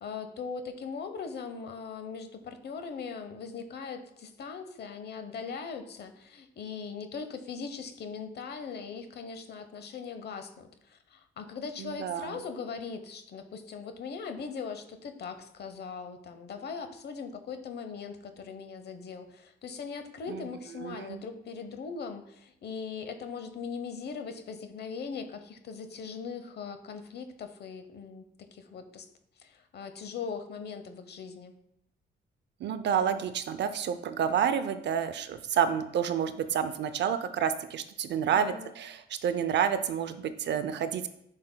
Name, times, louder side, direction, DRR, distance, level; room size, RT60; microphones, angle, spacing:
voice 1, 0.0-29.1 29.4-31.5 38.2-38.7, left 5 dB, 55° left, 8 dB, 0.8 m, -40 dB
voice 2, 11.8-12.4 20.3-20.5 20.8-21.3 32.6-41.1, right 8 dB, 60° right, 11 dB, 0.5 m, -29 dB
9.5 x 5.3 x 2.2 m, 0.77 s
cardioid pair, 90°, 20 cm